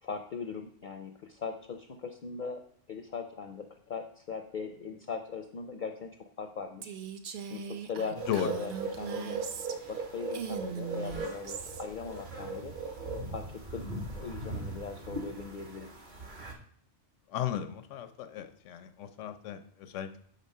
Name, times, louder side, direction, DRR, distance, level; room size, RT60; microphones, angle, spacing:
voice 1, 0.0-2.6 2.9-6.1 6.4-6.9 7.5-9.4 9.9-12.7 13.3-13.9 14.1-15.9, left 5 dB, 55° left, 5 dB, 0.6 m, -40 dB
Female speech woman speaking, 6.8-10.0 10.3-11.8, right 6 dB, 60° right, 0.6 m, -40 dB
sound 1, 8.2-16.5, right 3 dB, 40° right, 1.1 m, -39 dB
voice 2, 17.3-20.2, left 10 dB, 90° left, 9 dB, 1.0 m, -35 dB
5.3 x 5.2 x 5.4 m, 0.62 s
omnidirectional pair, 1.2 m